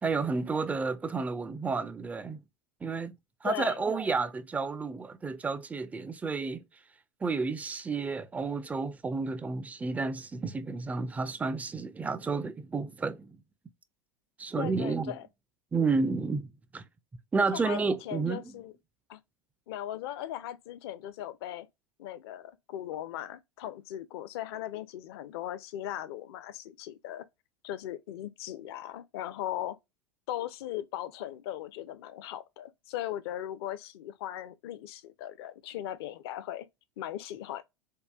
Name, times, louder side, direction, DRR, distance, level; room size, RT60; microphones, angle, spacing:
voice 1, 0.0-2.4 2.8-3.2 3.4-6.6 7.2-13.4 14.4-15.2 15.7-16.8 17.3-18.4, right 4 dB, 10° right, 0.4 m, -31 dB
voice 2, 3.4-3.8 14.6-15.3 17.5-18.7 19.1-19.2 19.7-21.7 22.0-27.3 27.6-29.8 30.3-36.7 37.0-37.6, left 12 dB, 50° left, 0.5 m, -38 dB
4.7 x 2.2 x 2.2 m
figure-of-eight pair, 85°, 16 cm